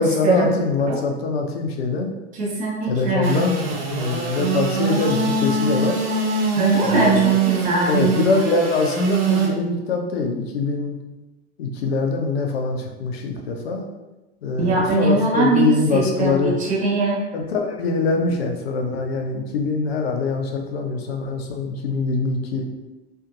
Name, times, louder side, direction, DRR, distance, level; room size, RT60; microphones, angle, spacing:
voice 1, 0.0-2.1 2.9-6.0 6.8-7.3 7.9-11.0 11.6-13.9 14.4-16.6 17.3-22.7, left 3 dB, 70° left, 3 dB, 0.6 m, -23 dB
voice 2, 2.3-3.4 6.5-8.0 14.6-17.2, right 2 dB, 25° right, -3 dB, 0.7 m, -21 dB
Engine / Sawing, 3.2-9.5, right 4 dB, 65° right, 0.7 m, -22 dB
2.6 x 2.4 x 2.4 m, 1.1 s
figure-of-eight pair, 85°, 33 cm